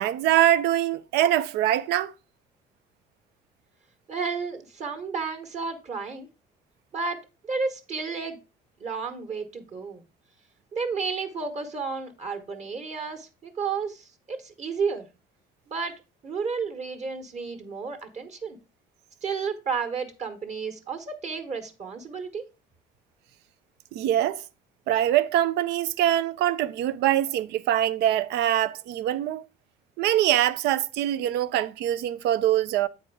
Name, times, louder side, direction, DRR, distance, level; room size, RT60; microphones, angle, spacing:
voice 1, 0.0-2.1 23.9-24.4 24.9-29.4 30.0-32.9, right 12 dB, 85° right, 0.5 m, -23 dB
voice 2, 4.1-6.3 6.9-8.4 8.8-10.1 10.7-15.1 15.7-18.6 19.2-22.5, right 5 dB, 40° right, 1.3 m, -32 dB
7.9 x 4.6 x 4.7 m
cardioid pair, 110°, 17 cm